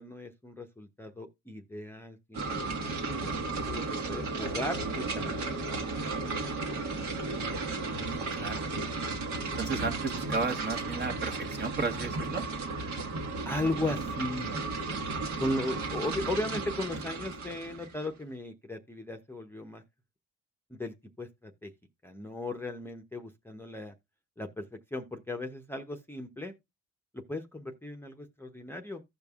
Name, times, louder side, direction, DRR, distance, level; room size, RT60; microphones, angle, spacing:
voice 1, 0.0-3.3 3.7-5.7 6.2-6.5 13.5-14.6 15.4-19.8 20.7-21.7 22.0-23.9 24.4-26.5 27.3-29.0, left 1 dB, 5° left, 0.8 m, -37 dB
sound 1, 2.3-18.1, right 3 dB, 65° right, 1.5 m, -34 dB
voice 2, 7.9-8.6 9.6-12.4, right 4 dB, 35° right, 1.3 m, -34 dB
15.0 x 5.2 x 2.4 m
cardioid pair, 90°, 30 cm